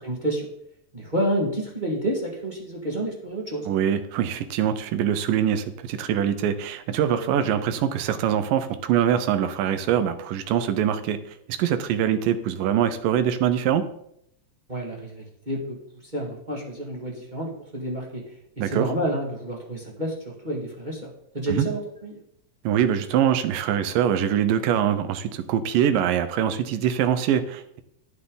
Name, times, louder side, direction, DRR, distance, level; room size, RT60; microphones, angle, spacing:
voice 1, 0.0-0.5 0.9-3.7 14.7-15.8 16.1-18.2 18.5-22.2, right 1 dB, 20° right, -2 dB, 1.3 m, -29 dB
voice 2, 3.7-11.2 11.5-13.8 18.6-18.9 21.5-21.7 22.6-27.8, right 9 dB, 85° right, 11 dB, 2.5 m, -23 dB
12.0 x 9.4 x 3.9 m, 0.73 s
omnidirectional pair, 3.9 m